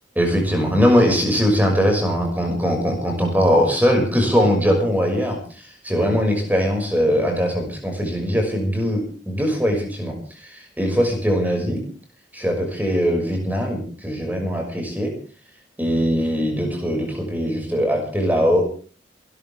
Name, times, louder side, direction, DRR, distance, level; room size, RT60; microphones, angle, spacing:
voice 1, 0.2-11.8 12.3-15.1 15.8-18.6, equal, 10° right, 2 dB, 6.0 m, -21 dB
27.5 x 13.0 x 3.6 m, 0.38 s
head